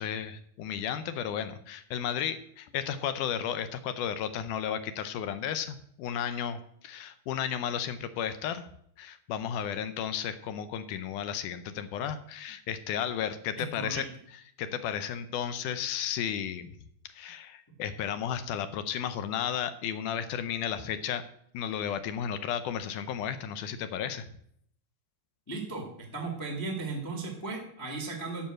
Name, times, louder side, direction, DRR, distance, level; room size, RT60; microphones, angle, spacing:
voice 1, 0.0-8.7 9.0-14.1 14.6-16.7 17.1-21.2 21.5-24.3, left 9 dB, 80° left, 11 dB, 1.8 m, -33 dB
voice 2, 13.6-14.0 25.5-25.9 26.1-28.5, right 3 dB, 25° left, 1 dB, 0.4 m, -36 dB
11.5 x 5.6 x 7.6 m, 0.69 s
omnidirectional pair, 4.3 m